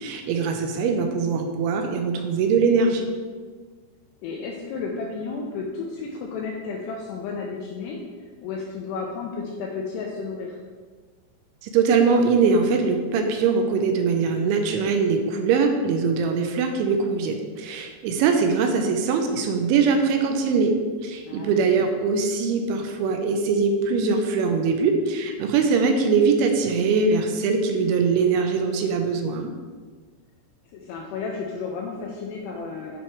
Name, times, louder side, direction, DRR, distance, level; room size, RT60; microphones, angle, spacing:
voice 1, 0.0-3.1 11.6-20.8 21.0-29.5, right 5 dB, 85° right, 5 dB, 2.9 m, -22 dB
voice 2, 4.2-8.0 8.4-10.6 21.2-21.6 30.7-33.0, left 4 dB, 85° left, 0 dB, 2.4 m, -32 dB
10.0 x 5.4 x 3.3 m, 1.5 s
omnidirectional pair, 5.6 m